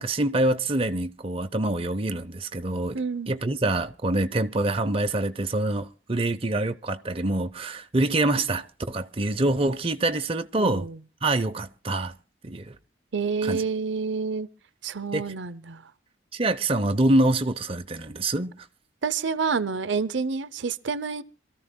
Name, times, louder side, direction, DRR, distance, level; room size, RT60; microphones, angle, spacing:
voice 1, 0.0-3.0 3.3-10.9 11.2-12.1 12.4-12.7 13.4-13.6 15.1-15.2 16.3-18.5, right 2 dB, 30° right, 0.6 m, -25 dB
voice 2, 2.9-3.3 10.6-11.0 13.1-14.5 14.8-15.8 19.0-21.2, right 5 dB, 70° right, 0.7 m, -28 dB
27.0 x 14.0 x 2.2 m
head